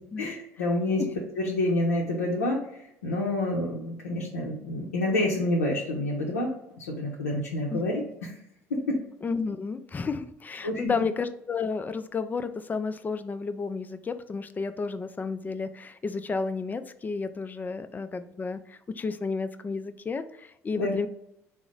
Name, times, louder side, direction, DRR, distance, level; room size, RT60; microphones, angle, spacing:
voice 1, 0.2-1.0 1.4-6.5 6.8-8.3 8.7-9.0 10.6-11.0 20.8-21.0, left 1 dB, 90° left, -4 dB, 0.5 m, -28 dB
voice 2, 9.2-21.1, left 4 dB, 20° left, 11 dB, 0.3 m, -32 dB
3.8 x 2.0 x 3.7 m, 0.78 s
hypercardioid pair, 60°, 8 cm